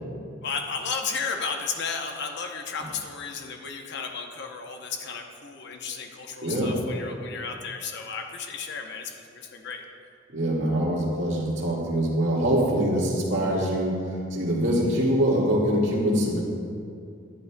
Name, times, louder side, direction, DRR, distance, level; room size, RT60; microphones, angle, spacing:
voice 1, 0.4-9.8, left 5 dB, 60° left, 3 dB, 0.8 m, -33 dB
voice 2, 6.4-6.7 10.3-16.4, equal, 70° right, -5 dB, 1.9 m, -24 dB
11.5 x 10.5 x 2.3 m, 2.4 s
head